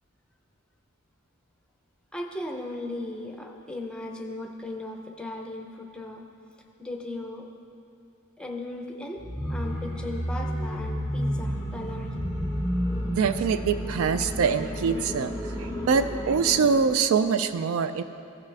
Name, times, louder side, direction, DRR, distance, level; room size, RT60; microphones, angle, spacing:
voice 1, 2.1-6.2 6.8-7.5 8.4-9.2 9.5-12.1, left 2 dB, 5° left, 1 dB, 0.6 m, -37 dB
sound 1, 9.2-16.9, equal, 10° right, 1.7 m, -31 dB
voice 2, 13.2-15.3 15.6-18.0, right 6 dB, 65° right, 11 dB, 0.3 m, -24 dB
15.0 x 5.9 x 3.4 m, 2.5 s
head